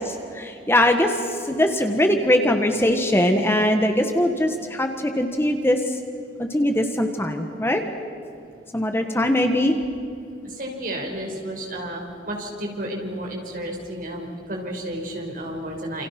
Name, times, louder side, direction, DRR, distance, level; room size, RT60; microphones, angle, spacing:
voice 1, 0.1-6.0 6.4-7.8 8.7-9.8, left 1 dB, 15° left, 5 dB, 1.5 m, -21 dB
voice 2, 10.4-16.1, right 1 dB, 50° right, 1 dB, 5.5 m, -32 dB
28.5 x 28.0 x 6.0 m, 2.5 s
head